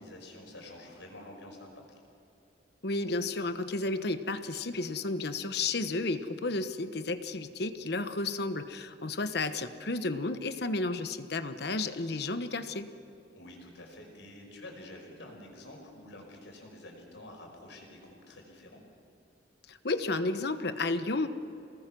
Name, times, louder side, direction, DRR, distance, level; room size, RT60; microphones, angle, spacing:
voice 1, 0.0-1.8 9.3-9.6 13.3-18.8, left 1 dB, 90° left, 1 dB, 5.4 m, -49 dB
voice 2, 2.8-12.9 19.7-21.3, left 3 dB, 60° left, 10 dB, 1.1 m, -32 dB
28.0 x 19.5 x 6.1 m, 2.7 s
head